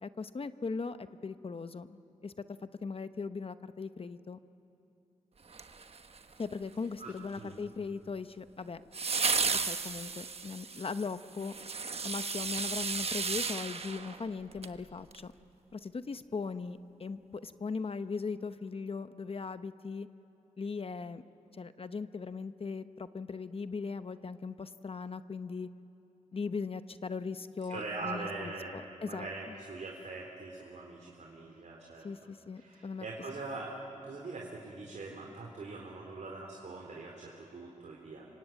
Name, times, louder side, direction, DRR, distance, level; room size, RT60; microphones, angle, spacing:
voice 1, 0.0-2.3 2.6-4.4 6.4-8.8 9.5-11.5 12.0-15.3 15.7-20.1 20.6-21.2 21.5-25.7 26.3-29.3 32.0-33.1, left 4 dB, 45° left, 11 dB, 0.9 m, -39 dB
sound 1, 5.5-6.4 8.9-14.8 15.1-15.2, right 4 dB, 50° right, 1.2 m, -34 dB
voice 2, 7.0-7.6 27.7-32.1 32.6-38.2, right 3 dB, 65° right, -2 dB, 3.7 m, -42 dB
26.5 x 24.5 x 9.0 m, 2.8 s
cardioid pair, 75°, 13 cm